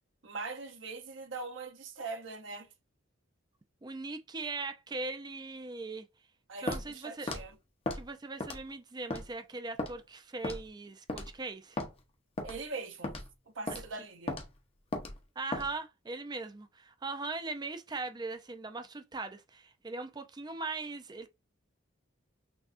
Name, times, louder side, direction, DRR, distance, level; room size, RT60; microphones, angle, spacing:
voice 1, 0.2-2.7 6.5-7.5 12.4-13.1 13.5-14.3, right 4 dB, 65° right, 0.8 m, -41 dB
voice 2, 3.8-6.1 6.6-7.3 7.9-11.8 15.4-21.3, right 3 dB, 20° right, 0.5 m, -40 dB
Walk footsteps, 6.7-6.9 7.3-7.4 7.9-8.0 8.4-8.7 9.1-9.2 9.8-9.9 10.4-10.7 11.1-11.3 11.8-11.9 12.4-12.6 13.0-13.3 13.7-13.8 14.3-14.5 14.9-15.1 15.5-15.7, left 2 dB, 30° left, 0.7 m, -35 dB
6.0 x 2.3 x 2.5 m
head